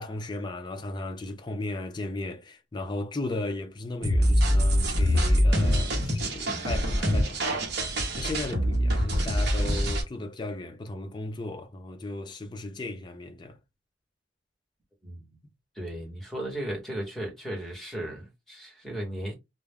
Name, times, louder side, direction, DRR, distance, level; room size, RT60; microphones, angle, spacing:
voice 1, 0.0-13.6, left 2 dB, 25° left, 0.4 m, -36 dB
sound 1, 4.0-10.0, equal, 55° right, 0.8 m, -24 dB
voice 2, 15.8-19.3, right 1 dB, ahead, 0.9 m, -35 dB
2.2 x 2.1 x 3.4 m
head